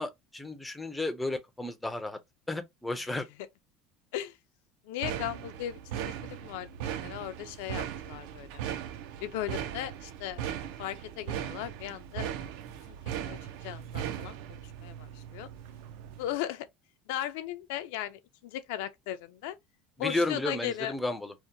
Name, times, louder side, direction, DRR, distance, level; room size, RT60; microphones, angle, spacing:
voice 1, 0.0-2.2 2.5-3.3 20.0-21.3, left 2 dB, 5° left, 0.3 m, -33 dB
voice 2, 4.9-8.6 9.2-10.4 10.8-12.3 13.2-13.4 13.6-15.5 16.2-16.7 17.1-19.6 20.0-20.9, left 12 dB, 80° left, 0.4 m, -37 dB
sound 1, 5.0-16.3, right 10 dB, 75° right, 0.3 m, -38 dB
2.7 x 2.1 x 2.4 m
cardioid pair, 165°, 0 cm